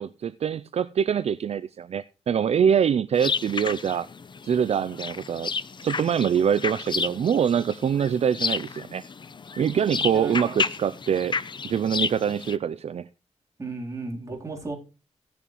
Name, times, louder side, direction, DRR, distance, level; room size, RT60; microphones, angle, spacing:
voice 1, 0.0-4.1 4.4-5.5 5.8-9.0 9.6-11.4 11.6-13.1, right 8 dB, 60° right, 0.4 m, -24 dB
sound 1, 3.1-12.6, left 5 dB, 40° left, 0.6 m, -32 dB
voice 2, 10.1-10.6 13.6-14.8, right 3 dB, 25° right, 3.6 m, -35 dB
17.5 x 6.9 x 3.1 m
wide cardioid pair, 115°, 12 cm